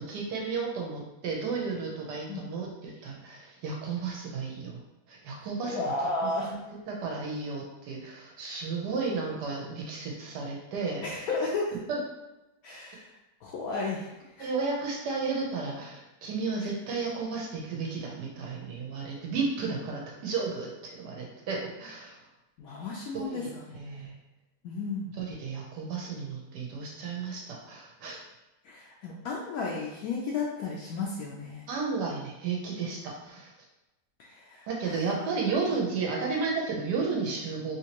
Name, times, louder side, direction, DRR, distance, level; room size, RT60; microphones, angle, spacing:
voice 1, 0.0-4.8 5.1-5.8 6.2-11.3 11.9-12.0 14.4-22.2 23.1-23.5 23.7-24.1 25.2-28.2 31.7-33.5 34.7-37.8, right 4 dB, 85° right, -2 dB, 1.3 m, -33 dB
voice 2, 5.7-6.5 11.0-11.7 12.6-13.1 13.4-14.5 22.6-23.4 23.7-24.0 24.6-25.1 28.6-31.6 34.2-35.1, left 3 dB, 70° left, -3 dB, 0.9 m, -33 dB
3.4 x 2.9 x 2.9 m, 0.99 s
omnidirectional pair, 1.8 m